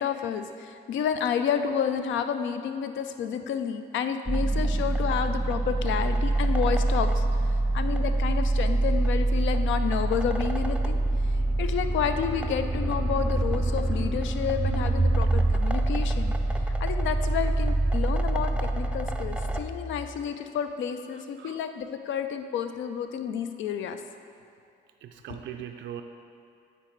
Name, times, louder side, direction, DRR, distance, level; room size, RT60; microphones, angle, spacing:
voice 1, 0.0-11.0 11.6-16.3 16.8-24.0, left 7 dB, 70° left, 8 dB, 0.5 m, -30 dB
sound 1, 4.3-19.6, right 2 dB, 5° right, 0.4 m, -25 dB
sound 2, 10.0-20.1, left 3 dB, 45° left, 1.7 m, -39 dB
voice 2, 21.1-21.6 25.0-26.0, right 10 dB, 70° right, 5 dB, 0.4 m, -41 dB
8.8 x 4.0 x 4.5 m, 2.4 s
cardioid pair, 90°, 20 cm